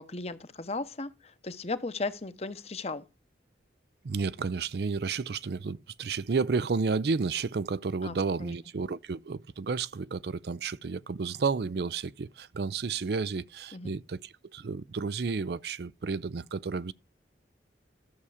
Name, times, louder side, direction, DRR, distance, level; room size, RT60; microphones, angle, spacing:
voice 1, 0.0-3.1 8.0-8.5 13.7-13.9, left 3 dB, 35° left, 0.9 m, -36 dB
voice 2, 4.0-16.9, right 4 dB, 65° right, 0.5 m, -31 dB
12.5 x 7.0 x 4.9 m
head